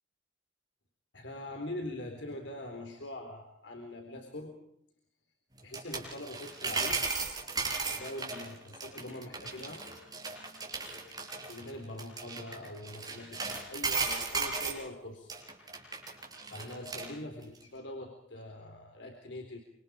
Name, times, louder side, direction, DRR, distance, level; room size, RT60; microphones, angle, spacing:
voice 1, 1.1-4.7 5.6-7.1 7.9-9.8 11.5-15.4 16.5-19.6, left 1 dB, 70° left, 3 dB, 4.0 m, -43 dB
sound 1, 5.6-14.8 15.3-17.1 17.4-17.6, right 4 dB, 20° right, 5.9 m, -36 dB
27.0 x 26.0 x 5.1 m, 0.72 s
head